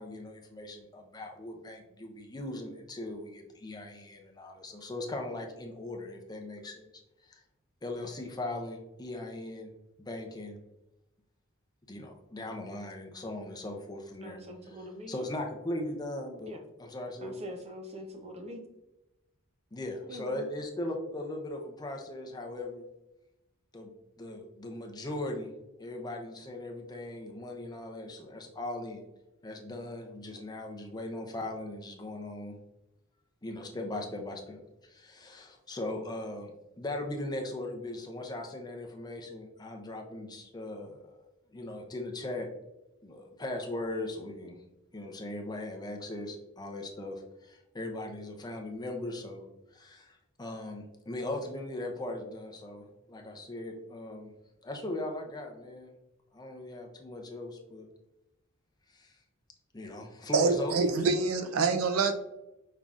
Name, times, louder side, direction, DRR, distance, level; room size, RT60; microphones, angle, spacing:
voice 1, 0.0-6.9 7.2-7.4 7.8-9.7 10.0-10.6 11.9-14.4 15.1-16.5 16.8-17.5 19.7-22.8 23.7-23.9 24.2-25.5 25.8-29.0 29.4-32.6 33.4-36.5 36.8-41.3 41.5-42.5 43.0-44.6 44.9-49.4 49.7-54.3 54.6-55.9 56.3-57.9 58.9-59.1 59.7-60.8, left 1 dB, 20° left, 2 dB, 0.6 m, -39 dB
voice 2, 14.2-15.1 16.4-16.6 17.2-18.6 20.1-20.5, equal, 30° right, 4 dB, 0.7 m, -43 dB
voice 3, 60.3-62.1, right 4 dB, 70° right, 7 dB, 0.5 m, -26 dB
5.5 x 3.7 x 2.4 m, 0.93 s
head